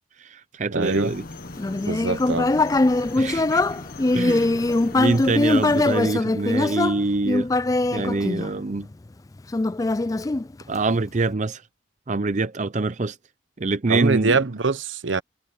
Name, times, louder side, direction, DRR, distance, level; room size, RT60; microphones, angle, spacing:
voice 1, 0.2-1.2 3.2-3.6 4.1-4.6 4.9-7.5 7.9-8.9 10.7-11.6 12.1-13.2 13.6-14.4, right 3 dB, 35° right, 0.6 m, -25 dB
voice 2, 0.7-1.1 1.9-2.5 13.9-15.2, right 4 dB, 75° right, 1.0 m, -23 dB
sound 1, 0.8-6.1, left 2 dB, 45° left, 1.1 m, -39 dB
Human voice, 1.6-8.9 9.5-11.0, left 2 dB, 15° left, 0.3 m, -22 dB
head